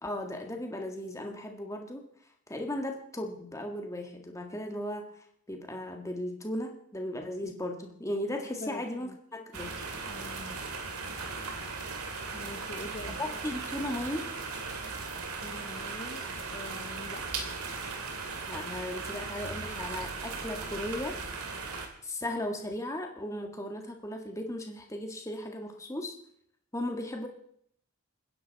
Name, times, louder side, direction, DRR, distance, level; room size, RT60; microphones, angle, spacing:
voice 1, 0.0-2.1 2.5-5.1 5.5-9.7 13.2-14.3 18.5-21.2 22.0-26.2 26.7-27.3, left 1 dB, 15° left, 3 dB, 1.8 m, -36 dB
voice 2, 8.6-9.1 10.1-10.6 12.3-13.2 15.4-17.3, left 2 dB, 35° left, 5 dB, 0.7 m, -44 dB
sound 1, 9.5-21.9, right 4 dB, 85° right, 2.4 m, -38 dB
28.5 x 10.0 x 4.1 m, 0.68 s
head